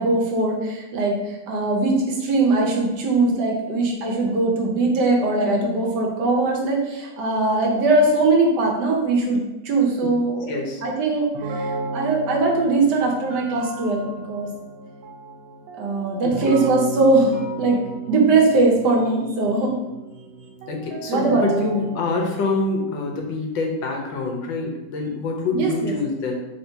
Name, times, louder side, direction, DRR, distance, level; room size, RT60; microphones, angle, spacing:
voice 1, 0.0-14.5 15.8-17.8 18.1-19.7 21.1-21.6 25.5-25.9, right 3 dB, 70° right, 0 dB, 1.3 m, -21 dB
voice 2, 10.5-10.8 16.4-16.5 20.7-26.4, left 3 dB, 85° left, 2 dB, 1.5 m, -25 dB
sound 1, 11.3-22.6, right 3 dB, 90° right, 1.3 m, -34 dB
3.6 x 2.7 x 4.4 m, 1.0 s
omnidirectional pair, 2.0 m